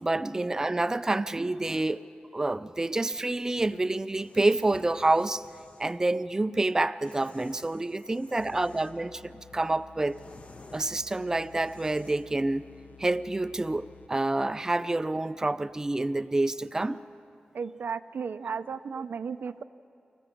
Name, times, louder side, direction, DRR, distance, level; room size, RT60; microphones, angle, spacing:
voice 1, 0.0-2.0 2.3-5.5 5.8-10.2 10.7-12.7 13.0-17.0, right 2 dB, 20° right, 0.4 m, -28 dB
sound 1, 4.1-6.0 7.0-9.1 9.5-12.4, left 2 dB, 45° left, 1.1 m, -54 dB
sound 2, 8.4-14.4, left 7 dB, 65° left, 0.7 m, -53 dB
voice 2, 17.5-19.6, right 6 dB, 85° right, 0.5 m, -34 dB
24.5 x 15.0 x 7.2 m
wide cardioid pair, 125°, 3 cm